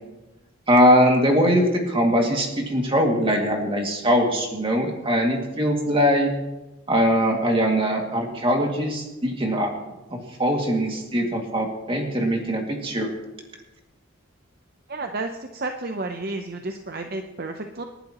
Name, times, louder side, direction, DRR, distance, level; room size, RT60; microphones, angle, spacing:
voice 1, 0.7-6.3 6.9-9.7 10.1-13.1, equal, 25° right, 1 dB, 2.2 m, -21 dB
voice 2, 14.9-17.8, right 2 dB, 45° right, 5 dB, 0.7 m, -31 dB
28.0 x 11.0 x 3.0 m, 1.1 s
head